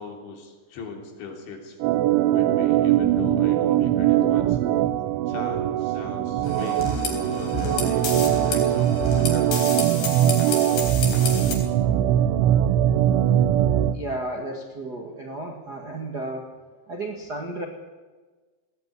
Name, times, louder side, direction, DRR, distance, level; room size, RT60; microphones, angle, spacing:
voice 1, 0.0-1.8 2.3-4.6 5.3-8.1 8.5-10.0, left 4 dB, 75° left, 2 dB, 5.6 m, -39 dB
Organ, 1.8-14.0, right 11 dB, 85° right, 3.2 m, -21 dB
sound 1, 6.4-11.5, left 4 dB, 60° left, 5.7 m, -30 dB
voice 2, 13.9-16.5 16.9-17.6, right 2 dB, 45° right, 1 dB, 1.2 m, -33 dB
19.5 x 16.5 x 9.5 m, 1.3 s
omnidirectional pair, 5.3 m